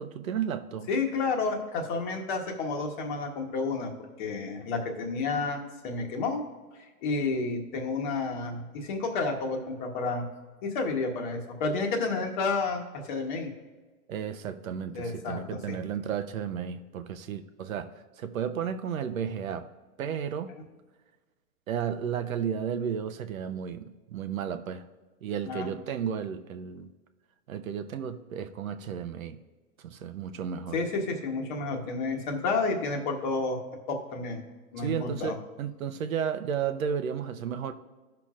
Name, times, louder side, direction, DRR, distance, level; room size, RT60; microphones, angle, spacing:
voice 1, 0.0-0.9 14.1-19.7 20.0-20.5 21.7-24.9 25.2-26.9 27.5-29.4 29.8-30.8 34.8-37.7, right 8 dB, 60° right, 0.8 m, -33 dB
voice 2, 0.9-3.9 4.2-6.4 6.8-10.3 10.6-13.5 14.9-15.8 25.4-25.7 30.7-33.6 33.9-34.4 34.7-35.4, left 3 dB, 30° left, 1.2 m, -30 dB
16.5 x 5.9 x 2.5 m
hypercardioid pair, 155°, 46 cm